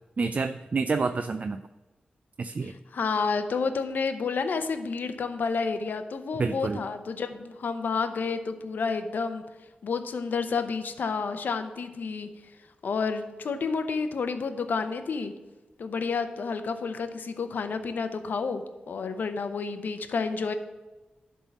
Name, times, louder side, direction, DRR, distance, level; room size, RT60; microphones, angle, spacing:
voice 1, 0.2-1.6 2.4-2.7 6.4-6.8, right 4 dB, 50° right, 10 dB, 0.4 m, -28 dB
voice 2, 2.6-9.4 9.8-12.3 12.8-15.3 15.8-20.5, left 5 dB, 80° left, 8 dB, 0.7 m, -30 dB
11.0 x 3.7 x 6.0 m, 1.1 s
cardioid pair, 60°, 3 cm